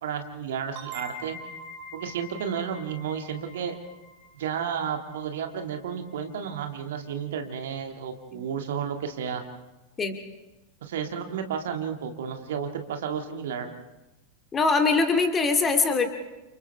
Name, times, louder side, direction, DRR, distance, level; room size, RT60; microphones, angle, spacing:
voice 1, 0.0-1.4 1.9-3.8 4.3-9.4 10.8-13.7, right 7 dB, 60° right, 5 dB, 2.1 m, -32 dB
sound 1, 0.8-6.2, equal, 40° right, 3.7 m, -44 dB
voice 2, 14.5-16.1, left 4 dB, 20° left, 5 dB, 2.4 m, -22 dB
30.0 x 29.0 x 3.5 m, 1.0 s
figure-of-eight pair, 90°, 0 cm